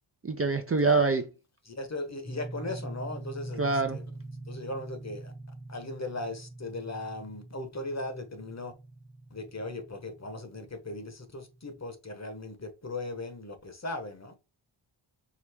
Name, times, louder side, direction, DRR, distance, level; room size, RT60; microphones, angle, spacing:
voice 1, 0.2-1.3 3.6-4.0, right 3 dB, 30° right, 0.5 m, -25 dB
voice 2, 1.7-4.0 4.5-5.3 5.7-8.7 9.3-14.3, left 2 dB, 35° left, 1.1 m, -38 dB
sound 1, 2.2-11.8, right 2 dB, 15° right, 1.0 m, -44 dB
4.7 x 2.7 x 3.4 m
wide cardioid pair, 105°, 48 cm